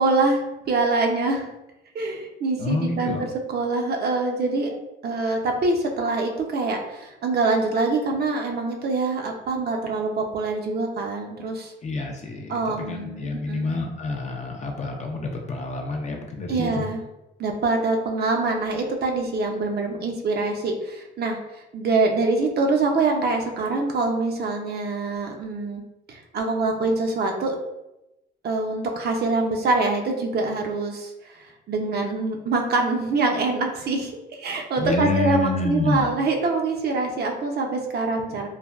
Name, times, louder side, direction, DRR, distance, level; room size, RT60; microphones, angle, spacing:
voice 1, 0.0-1.5 1.9-4.8 5.0-11.7 12.5-13.8 16.5-17.0 17.4-21.4 21.7-25.8 26.1-27.6 28.4-31.1 31.7-38.5, right 3 dB, 55° right, 2 dB, 0.5 m, -24 dB
voice 2, 2.6-3.2 11.8-16.8 34.8-36.1, left 3 dB, 35° left, 1 dB, 0.4 m, -28 dB
3.2 x 2.1 x 2.4 m, 0.94 s
cardioid pair, 90°, 20 cm